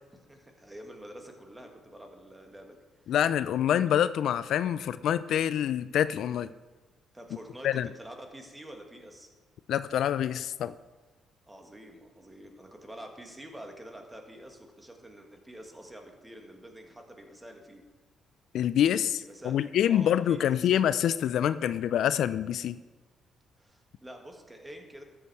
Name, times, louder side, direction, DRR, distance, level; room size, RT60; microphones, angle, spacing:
voice 1, 0.1-2.8 7.1-9.3 11.5-17.8 19.2-20.7 23.6-25.0, right 1 dB, 10° right, 3 dB, 1.7 m, -47 dB
voice 2, 3.1-6.5 7.6-7.9 9.7-10.7 18.5-22.8, left 10 dB, 75° left, 14 dB, 0.3 m, -26 dB
12.5 x 6.9 x 4.7 m, 1.2 s
cardioid pair, 90°, 0 cm